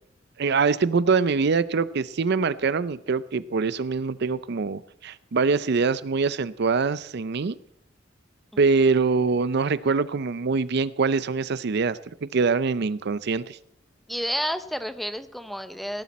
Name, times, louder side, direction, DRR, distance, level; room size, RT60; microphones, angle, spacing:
voice 1, 0.4-7.6 8.6-13.6, right 4 dB, 60° right, 16 dB, 0.5 m, -24 dB
voice 2, 14.1-16.0, equal, ahead, 10 dB, 0.7 m, -30 dB
17.5 x 11.5 x 4.2 m, 0.75 s
head